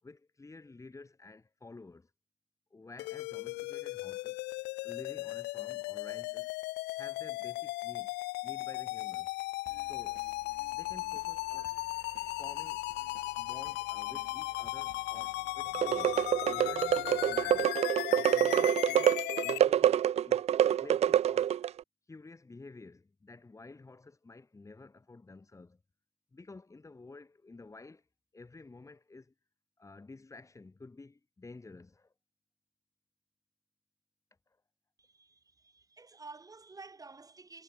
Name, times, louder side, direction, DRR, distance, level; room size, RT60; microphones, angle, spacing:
voice 1, 0.0-2.1 2.7-4.4 4.8-6.5 7.0-8.1 8.4-9.3 9.8-10.3 10.7-11.8 12.4-12.9 13.4-17.7 18.1-20.4 20.8-21.6 22.1-25.8 26.3-28.0 28.3-29.3 29.8-32.1, left 3 dB, 20° left, 6.0 m, -51 dB
sound 1, 3.0-19.6, left 22 dB, 85° left, 0.4 m, -37 dB
sound 2, 9.7-17.7, right 12 dB, 60° right, 6.1 m, -56 dB
sound 3, 15.7-21.8, right 10 dB, 40° right, 0.4 m, -27 dB
voice 2, 35.0-37.6, right 3 dB, 20° right, 5.8 m, -51 dB
cardioid pair, 110°, 17 cm